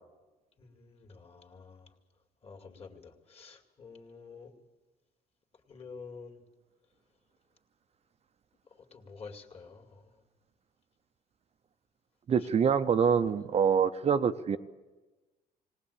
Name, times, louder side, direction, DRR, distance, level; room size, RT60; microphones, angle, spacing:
voice 1, 0.6-1.9 2.4-4.5 5.7-6.4 8.9-10.1 12.4-12.5, left 5 dB, 35° left, 2.4 m, -49 dB
voice 2, 12.3-14.6, right 7 dB, 40° right, 0.6 m, -25 dB
19.5 x 18.5 x 8.5 m
cardioid pair, 110°, 17 cm